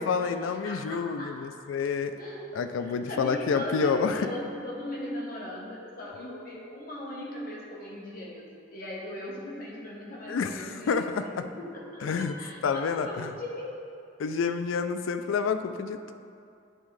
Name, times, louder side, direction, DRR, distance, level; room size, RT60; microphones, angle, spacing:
voice 1, 0.0-2.2 2.5-4.3 10.3-11.5 12.0-12.4 12.6-13.3 14.2-16.1, left 5 dB, 90° left, 9 dB, 0.4 m, -29 dB
voice 2, 0.6-1.4 2.2-8.5 8.7-13.7, left 1 dB, 50° left, -4 dB, 1.1 m, -39 dB
10.0 x 3.6 x 3.2 m, 2.5 s
head